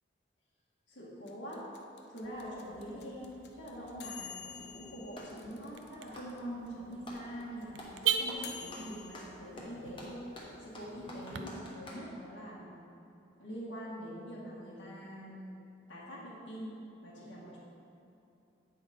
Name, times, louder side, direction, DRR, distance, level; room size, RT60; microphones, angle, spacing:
voice 1, 0.9-1.7 2.1-10.2 10.6-12.8 13.4-15.6 15.9-16.7 17.0-17.6, equal, 85° left, -7 dB, 1.7 m, -44 dB
sound 1, 1.3-6.4 6.7-6.8 6.9-9.2, left 8 dB, 60° left, 0.6 m, -48 dB
Car / Alarm, 2.2-11.4, right 8 dB, 80° right, 0.5 m, -41 dB
Clapping, 4.5-5.4 6.0-7.3 7.7-8.0 8.3-12.1, left 1 dB, 25° left, 1.1 m, -48 dB
9.2 x 5.9 x 4.3 m, 2.8 s
head